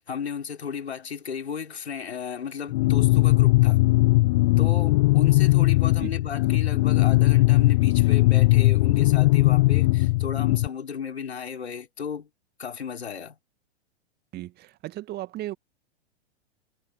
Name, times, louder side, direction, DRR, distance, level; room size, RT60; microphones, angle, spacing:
voice 1, 0.0-3.8 4.6-12.3 12.6-13.4, left 7 dB, 75° left, 4.4 m, -34 dB
sound 1, 2.7-10.7, left 21 dB, 35° left, 0.4 m, -19 dB
voice 2, 14.3-15.6, right 15 dB, 30° right, 2.1 m, -35 dB
figure-of-eight pair, 100°, 32 cm